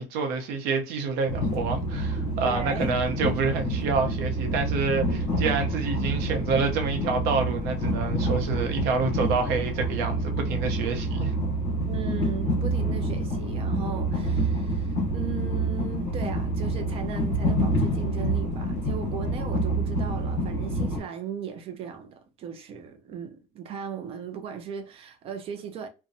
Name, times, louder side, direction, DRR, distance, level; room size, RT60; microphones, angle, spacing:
voice 1, 0.0-11.3, right 4 dB, 60° right, 0.7 m, -28 dB
Train, 1.3-21.0, right 1 dB, 65° left, 1.2 m, -27 dB
voice 2, 2.4-2.9 11.9-25.9, right 7 dB, 35° right, 0.4 m, -37 dB
2.7 x 2.1 x 2.5 m
cardioid pair, 165°, 17 cm